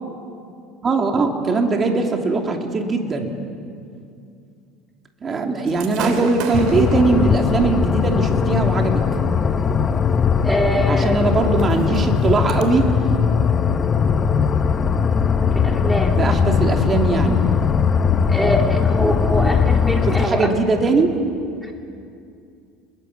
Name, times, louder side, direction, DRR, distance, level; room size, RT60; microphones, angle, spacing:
voice 1, 0.8-3.4 5.2-9.0 10.9-12.9 16.1-17.4 19.3-19.6 20.0-21.1, right 3 dB, 25° right, 3 dB, 2.7 m, -20 dB
Gunshot gunfire / Fireworks, 5.7-12.6, right 6 dB, 65° right, 3.2 m, -36 dB
sound 1, 6.5-20.3, left 6 dB, 25° left, 1.1 m, -19 dB
voice 2, 10.4-11.3 15.6-16.2 18.3-20.5 21.6-21.7, equal, ahead, 1 dB, 3.4 m, -23 dB
29.0 x 21.5 x 8.3 m, 2.5 s
cardioid pair, 135°, 0 cm